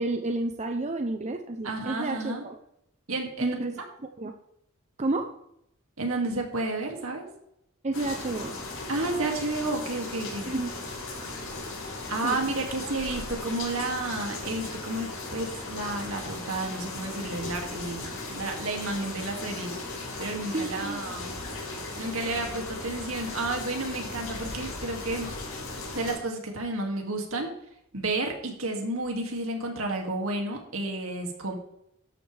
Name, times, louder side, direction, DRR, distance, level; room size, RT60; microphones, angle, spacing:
voice 1, 0.0-2.6 3.4-3.7 4.2-4.3 5.0-5.4 7.8-8.5 10.5-10.7 12.2-12.4 12.8-12.9 20.5-21.0, right 2 dB, 35° right, 5 dB, 0.7 m, -30 dB
voice 2, 1.6-2.4 3.1-3.6 6.0-7.3 8.9-10.5 12.1-19.8 20.2-21.3 22.0-25.3 25.9-27.5 27.9-31.5, right 2 dB, 75° right, 2 dB, 2.7 m, -31 dB
sound 1, 7.9-26.2, left 2 dB, 70° left, 4.5 m, -37 dB
13.0 x 9.7 x 3.5 m, 0.76 s
head